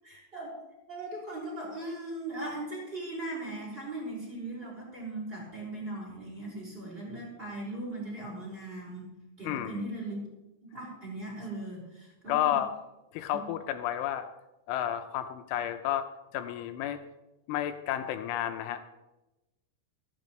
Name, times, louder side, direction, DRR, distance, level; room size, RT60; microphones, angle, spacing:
voice 1, 0.0-0.5 0.9-9.1 9.4-10.3 10.6-12.6 13.3-13.4, right 2 dB, 10° right, -3 dB, 5.3 m, -39 dB
voice 2, 9.4-9.9 12.3-12.7 13.1-14.3 14.7-16.1 16.3-17.0 17.5-18.9, left 11 dB, 80° left, 8 dB, 3.1 m, -31 dB
15.5 x 15.5 x 3.2 m, 0.99 s
omnidirectional pair, 5.6 m